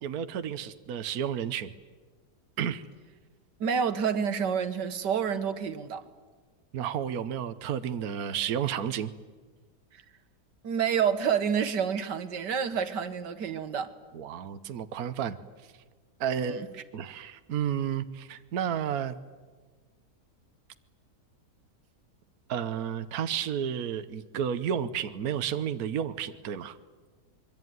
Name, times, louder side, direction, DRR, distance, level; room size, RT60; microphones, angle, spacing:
voice 1, 0.0-1.7 2.6-2.8 6.7-9.1 14.1-15.4 15.6-15.7 16.2-16.6 16.9-19.2 22.5-26.8, right 8 dB, 65° right, 1.4 m, -31 dB
voice 2, 3.6-6.1 10.6-13.9 16.4-16.7, right 7 dB, 90° right, 2.0 m, -28 dB
26.0 x 23.0 x 9.4 m
omnidirectional pair, 1.8 m